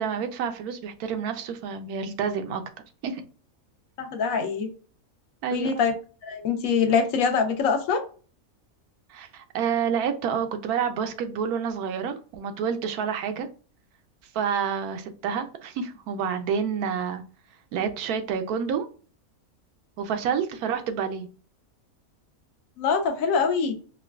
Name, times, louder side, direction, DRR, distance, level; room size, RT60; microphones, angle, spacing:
voice 1, 0.0-2.6 3.0-3.2 5.4-5.8 9.1-13.5 14.3-17.2 17.7-18.9 20.0-21.3, right 7 dB, 85° right, 1.1 m, -28 dB
voice 2, 4.0-4.7 5.5-5.9 6.2-8.0 22.8-23.8, left 5 dB, 70° left, 1.0 m, -24 dB
4.7 x 2.1 x 2.2 m
omnidirectional pair, 1.5 m